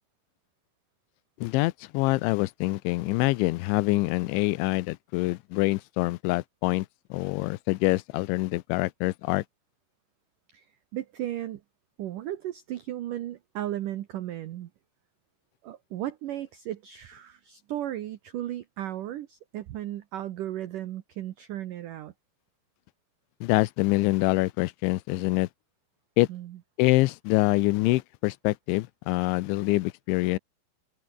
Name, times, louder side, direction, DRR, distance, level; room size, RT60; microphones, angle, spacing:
voice 1, 1.4-6.9 7.1-9.4 23.4-25.5 26.2-26.3 26.8-30.4, left 21 dB, 85° left, 3.0 m, -25 dB
voice 2, 10.9-11.6 12.0-14.7 15.6-22.1 26.3-26.6, right 13 dB, 90° right, 1.8 m, -35 dB
open air
omnidirectional pair, 5.4 m